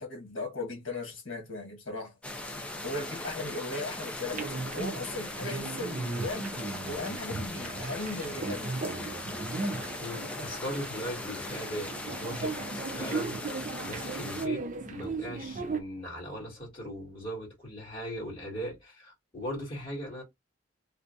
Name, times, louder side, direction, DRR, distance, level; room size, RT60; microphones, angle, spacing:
voice 1, 0.0-2.2 2.8-6.5 6.8-8.7, left 2 dB, 75° left, 1.5 m, -37 dB
sound 1, 2.2-14.5, left 2 dB, 5° left, 0.6 m, -39 dB
sound 2, 4.3-15.8, right 3 dB, 40° right, 0.6 m, -37 dB
voice 2, 10.0-20.2, equal, 30° left, 2.3 m, -39 dB
3.3 x 2.6 x 2.6 m
head